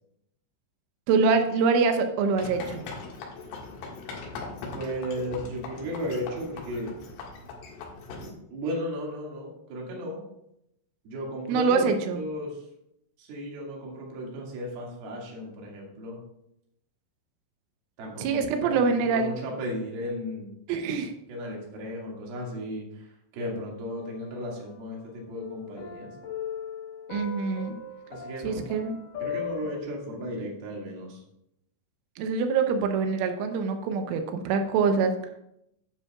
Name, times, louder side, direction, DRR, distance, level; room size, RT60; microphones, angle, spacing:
voice 1, 1.1-2.9 11.5-12.2 18.2-19.3 20.7-21.1 27.1-27.8 28.4-29.0 32.2-35.2, right 5 dB, 85° right, 6 dB, 3.3 m, -25 dB
sound 1, 2.4-8.3, left 4 dB, 85° left, 4.1 m, -40 dB
voice 2, 4.7-6.9 8.2-10.2 11.0-12.7 13.2-16.2 18.0-20.6 21.3-26.1 28.1-28.7 29.2-31.2, equal, 60° right, -3 dB, 3.7 m, -35 dB
sound 2, 23.9-25.0 25.3-29.8, left 7 dB, 70° left, 2.1 m, -38 dB
11.5 x 9.8 x 2.4 m, 0.79 s
omnidirectional pair, 5.5 m